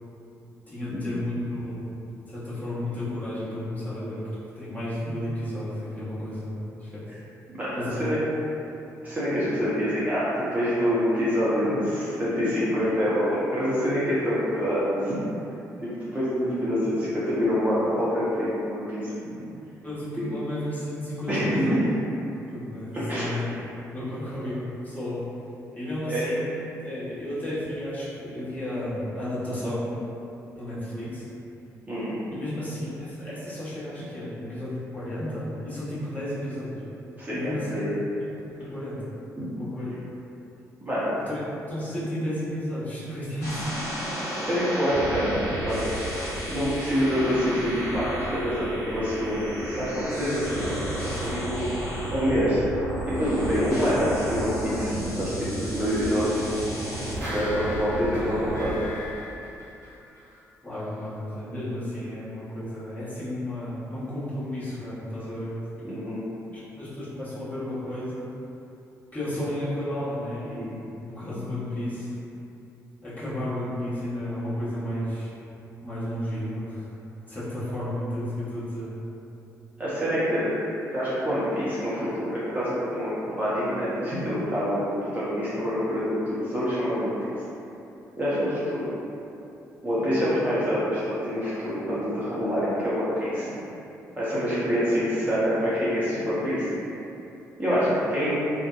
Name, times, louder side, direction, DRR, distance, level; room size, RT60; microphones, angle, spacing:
voice 1, 0.7-1.9 2.3-4.2 4.6-7.1 7.7-8.1 19.8-21.8 22.5-23.5 23.9-25.3 25.7-26.5 26.8-30.0 30.5-31.2 32.3-36.8 37.3-37.8 38.5-39.0 39.5-39.9 41.3-43.7 60.6-65.6 65.9-66.0 66.5-68.3 69.1-72.2 73.0-75.4 75.8-76.9 77.3-78.9, left 1 dB, 20° left, -12 dB, 1.1 m, -32 dB
voice 2, 9.0-15.1 15.8-19.3 21.3-21.8 22.9-23.3 26.1-26.2 31.9-32.1 37.2-37.9 39.4-39.5 40.8-41.1 44.5-45.8 46.5-51.7 52.1-52.6 53.0-56.4 57.3-58.8 65.8-66.2 79.8-80.5 80.9-87.1 88.2-88.9 89.8-93.5 94.2-96.7 97.6-98.4, equal, 20° right, -11 dB, 0.7 m, -26 dB
sound 1, 43.4-58.7, right 1 dB, 75° left, 0.8 m, -32 dB
sound 2, 56.9-60.4 60.7-60.8, left 1 dB, 80° right, 0.9 m, -38 dB
2.5 x 2.1 x 2.3 m, 2.8 s
figure-of-eight pair, 40°, 9 cm